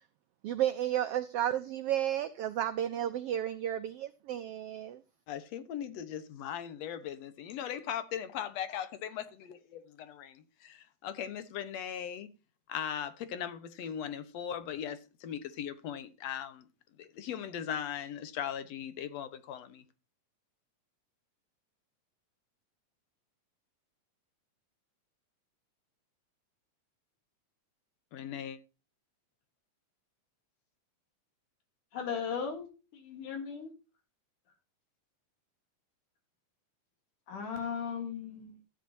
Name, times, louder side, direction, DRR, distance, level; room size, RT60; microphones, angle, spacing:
voice 1, 0.4-5.0, right 11 dB, 90° right, 1.3 m, -32 dB
voice 2, 5.3-12.3 12.7-16.7 17.0-19.8 28.1-28.6, left 9 dB, 65° left, 2.1 m, -39 dB
voice 3, 31.9-33.7 37.3-38.6, left 6 dB, 90° left, 4.3 m, -37 dB
14.0 x 9.1 x 2.7 m
omnidirectional pair, 3.5 m